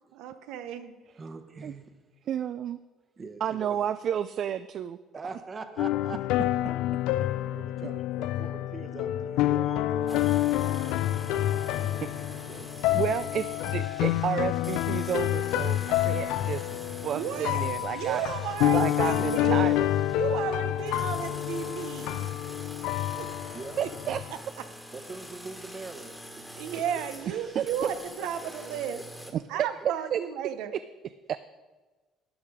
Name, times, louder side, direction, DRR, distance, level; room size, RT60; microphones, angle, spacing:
voice 1, 0.1-1.0 17.1-19.7 20.1-22.3 23.1-23.3 23.8-23.9 24.3-24.4 26.6-29.0 29.5-30.7, right 9 dB, 85° right, 10 dB, 0.8 m, -34 dB
voice 2, 1.2-2.0 3.2-3.8 5.1-6.7 7.5-11.1 11.6-13.2 23.5-23.8 24.9-27.0 27.4-28.0 28.4-29.6, right 4 dB, 25° right, 8 dB, 1.0 m, -44 dB
voice 3, 2.3-2.8 3.4-5.0 12.0-12.1 12.9-16.7 17.0-18.2 18.7-19.9 23.8-24.2 27.6-27.7 29.3-29.4 30.1-30.2 31.3-31.4, right 9 dB, 50° right, 13 dB, 0.3 m, -31 dB
sound 1, 5.8-24.3, left 14 dB, 85° left, 0.4 m, -28 dB
sound 2, 10.1-29.3, equal, ahead, 1.4 m, -45 dB
12.5 x 9.1 x 4.9 m, 1.3 s
cardioid pair, 130°, 0 cm